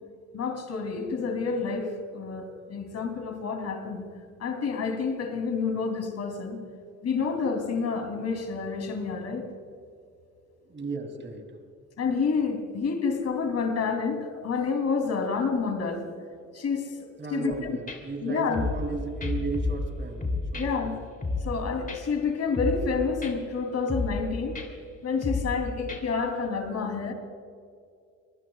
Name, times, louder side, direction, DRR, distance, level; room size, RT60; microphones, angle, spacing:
voice 1, 0.3-4.0 4.4-6.6 7.0-9.5 12.0-16.1 16.5-17.8 18.2-18.6 20.6-21.0 21.4-24.6 25.0-27.1, left 5 dB, 55° left, 4 dB, 3.4 m, -29 dB
voice 2, 10.7-11.5 17.2-21.0, right 3 dB, 40° right, 4 dB, 3.2 m, -35 dB
sound 1, 17.5-17.6 17.9-18.0 18.5-18.9 19.2-19.9 20.2-20.7 21.2-21.6 21.9-22.0 22.5-22.9 23.2-23.3 23.9-24.3 24.6-24.7 25.2-25.6 25.9-26.0, left 3 dB, 30° left, 3.2 m, -30 dB
25.0 x 19.5 x 2.4 m, 2.3 s
cardioid pair, 90°, 30 cm